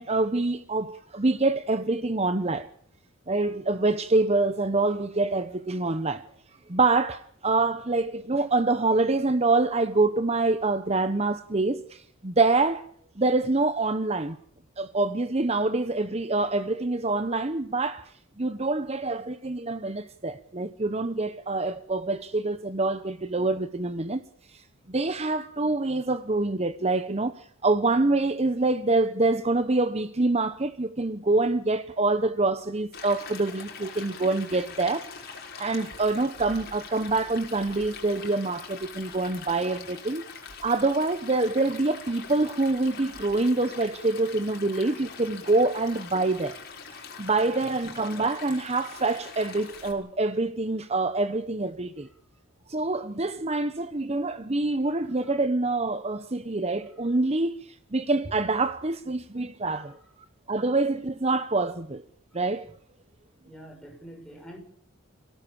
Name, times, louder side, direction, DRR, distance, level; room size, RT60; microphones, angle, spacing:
voice 1, 0.0-2.7 3.3-6.2 6.7-12.9 13.2-14.4 14.8-24.2 24.5-40.2 40.6-46.6 46.9-52.1 52.7-59.9 60.5-62.0 62.3-62.7, right 2 dB, 30° right, 0.9 m, -26 dB
Stream, 32.9-49.9, left 5 dB, 50° left, 5.8 m, -43 dB
voice 2, 63.4-64.6, right 1 dB, 5° left, 6.8 m, -46 dB
27.5 x 18.0 x 7.2 m
head